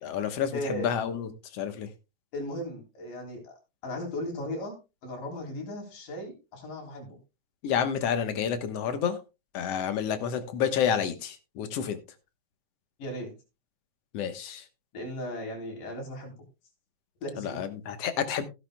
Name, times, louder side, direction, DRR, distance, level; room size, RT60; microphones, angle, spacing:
voice 1, 0.0-1.9 7.6-9.2 9.5-12.0 14.1-14.6 17.4-18.4, left 8 dB, 60° left, 2.0 m, -29 dB
voice 2, 0.5-0.9 2.3-3.6 3.8-4.8 5.0-7.2 13.0-13.3 14.9-16.4 17.2-17.6, equal, 80° left, 5.3 m, -36 dB
15.0 x 12.0 x 2.2 m
omnidirectional pair, 3.6 m